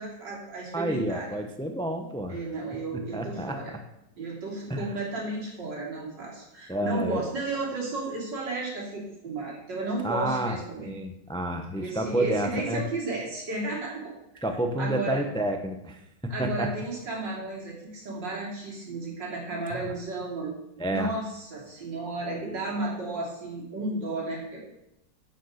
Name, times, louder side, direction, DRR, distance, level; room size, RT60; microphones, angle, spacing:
voice 1, 0.0-1.3 2.3-3.7 4.2-10.9 11.8-14.0 14.8-15.2 16.3-20.5 20.9-24.6, right 2 dB, 75° right, -3 dB, 3.8 m, -33 dB
voice 2, 0.7-2.4 3.1-3.8 4.7-4.9 6.7-7.2 10.0-12.8 14.4-16.7 19.7-19.8 20.8-21.1 22.3-22.6, right 1 dB, 5° left, 5 dB, 0.4 m, -30 dB
9.3 x 8.0 x 6.5 m, 0.85 s
omnidirectional pair, 1.9 m